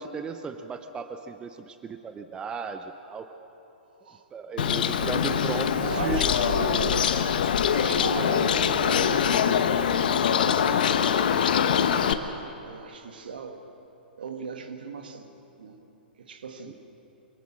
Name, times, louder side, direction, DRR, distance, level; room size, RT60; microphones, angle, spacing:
voice 1, 0.0-3.3 4.3-6.3 16.7-16.8, right 5 dB, 15° right, 8 dB, 0.7 m, -36 dB
Bird, 4.6-12.1, left 8 dB, 60° left, 1.0 m, -23 dB
voice 2, 4.8-5.5 5.8-7.2 7.7-11.8 12.6-13.6 14.2-15.3 15.6-15.8 16.2-16.7, right 5 dB, 65° right, 6 dB, 1.8 m, -37 dB
24.0 x 18.0 x 6.4 m, 3.0 s
figure-of-eight pair, 110°, 5 cm